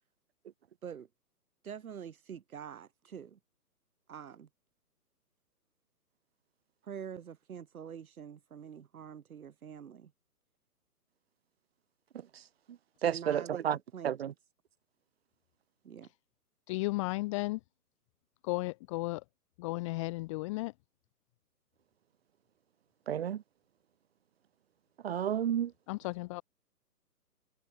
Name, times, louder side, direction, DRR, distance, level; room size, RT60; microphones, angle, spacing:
voice 1, 1.6-3.4 4.1-4.5 6.8-10.1 13.0-14.2 15.8-16.1, right 8 dB, 60° right, 2.4 m, -45 dB
voice 2, 13.0-13.8 14.0-14.3 23.1-23.4 25.0-25.7, right 9 dB, 40° right, 0.9 m, -31 dB
voice 3, 16.7-17.6 18.4-19.2 19.6-20.7 25.9-26.4, left 22 dB, 20° left, 1.3 m, -34 dB
hypercardioid pair, 150°, 48 cm